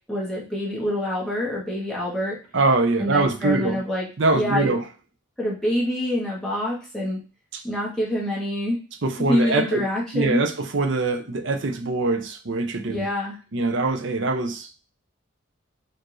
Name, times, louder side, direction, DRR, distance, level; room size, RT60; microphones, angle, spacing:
voice 1, 0.1-2.4 3.0-4.1 4.3-4.8 5.4-7.2 7.6-8.8 9.2-10.4 12.9-13.4, left 1 dB, 5° left, 1.3 m, -26 dB
voice 2, 2.5-3.8 4.2-4.8 7.5-7.6 9.0-9.9 10.1-13.1 13.5-14.8, right 3 dB, 60° right, 0.6 m, -23 dB
4.5 x 2.6 x 3.0 m
head